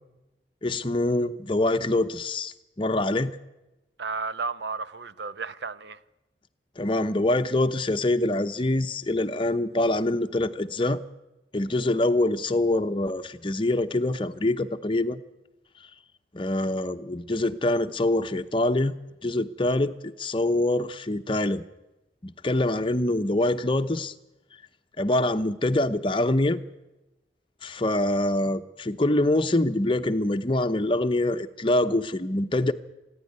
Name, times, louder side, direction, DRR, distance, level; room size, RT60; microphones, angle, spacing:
voice 1, 0.6-3.4 6.8-11.0 11.5-15.2 16.3-18.9 19.2-21.6 22.2-24.1 25.0-26.6 27.6-32.7, left 1 dB, 30° left, 0.8 m, -25 dB
voice 2, 4.0-6.0, right 4 dB, 80° right, 0.9 m, -33 dB
25.5 x 10.5 x 9.7 m
head